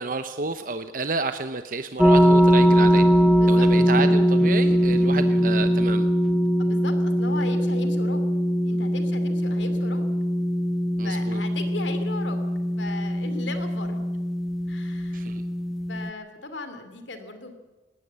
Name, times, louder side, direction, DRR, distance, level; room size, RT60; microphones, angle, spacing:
voice 1, 0.0-3.0 3.5-6.1 11.0-11.4 15.1-15.4, right 3 dB, 45° right, 9 dB, 0.8 m, -30 dB
sound 1, 2.0-16.1, equal, ahead, 0.7 m, -21 dB
voice 2, 3.3-3.7 6.6-8.2 8.6-10.1 11.0-12.4 12.8-14.0 14.7-15.3 15.9-17.5, left 3 dB, 85° left, 9 dB, 2.7 m, -37 dB
20.0 x 17.5 x 7.6 m, 1.2 s
head